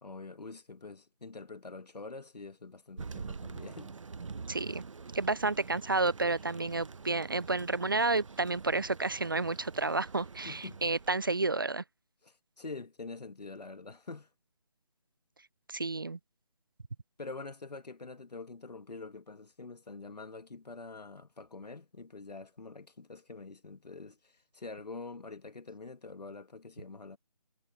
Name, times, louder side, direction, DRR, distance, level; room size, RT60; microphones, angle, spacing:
voice 1, 0.0-4.0 10.4-10.8 12.2-14.3 17.2-27.2, left 3 dB, 80° left, 1.8 m, -45 dB
Thunder, 3.0-11.5, right 4 dB, 50° right, 1.0 m, -46 dB
voice 2, 4.5-4.8 5.1-11.8 15.7-16.2, right 3 dB, 35° right, 0.4 m, -31 dB
figure-of-eight pair, 165°, 20 cm